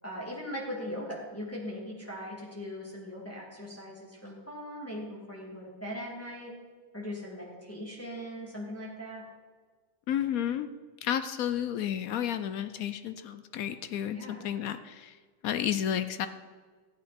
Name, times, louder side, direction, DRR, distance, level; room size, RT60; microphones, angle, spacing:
voice 1, 0.0-6.5 6.9-9.2 14.1-14.4, equal, 5° left, -5 dB, 2.6 m, -40 dB
voice 2, 10.1-10.7 11.0-15.2 15.4-16.3, left 10 dB, 70° left, 11 dB, 0.8 m, -31 dB
15.5 x 8.7 x 4.4 m, 1.5 s
omnidirectional pair, 2.0 m